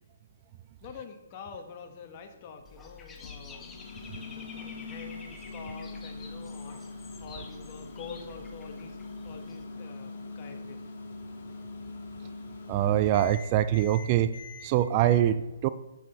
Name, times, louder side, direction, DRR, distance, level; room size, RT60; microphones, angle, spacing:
voice 1, 0.8-9.0 9.2-10.8, left 5 dB, 35° left, 4 dB, 1.2 m, -46 dB
Dog / Bird, 2.6-9.7, left 4 dB, 10° left, 0.8 m, -49 dB
Microwave oven, 3.2-14.7, left 3 dB, 55° left, 1.5 m, -42 dB
voice 2, 12.7-14.3 14.6-15.7, right 12 dB, 30° right, 13 dB, 0.3 m, -24 dB
7.8 x 6.1 x 4.1 m, 1.0 s
hypercardioid pair, 150°, 0 cm